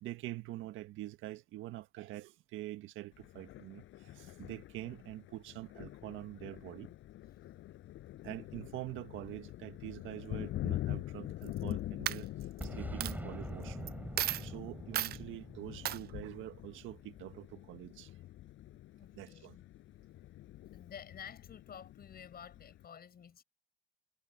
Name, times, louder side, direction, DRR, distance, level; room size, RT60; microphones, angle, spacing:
voice 1, 0.0-6.9 8.2-12.3 12.6-13.9 14.4-18.1 19.2-19.6, right 16 dB, 75° right, 1.7 m, -45 dB
Thunder, 3.1-22.9, left 14 dB, 70° left, 7.9 m, -45 dB
Coin (dropping), 11.4-11.7 12.1-12.7 13.0-13.1 13.9-14.0 14.2-14.5 14.9-15.2 15.8-16.0, right 14 dB, 50° right, 0.4 m, -34 dB
Boom, 12.6-17.3, right 1 dB, 10° right, 5.3 m, -45 dB
voice 2, 19.0-19.7 20.7-23.4, left 8 dB, 50° left, 5.4 m, -51 dB
supercardioid pair, 70°, 21 cm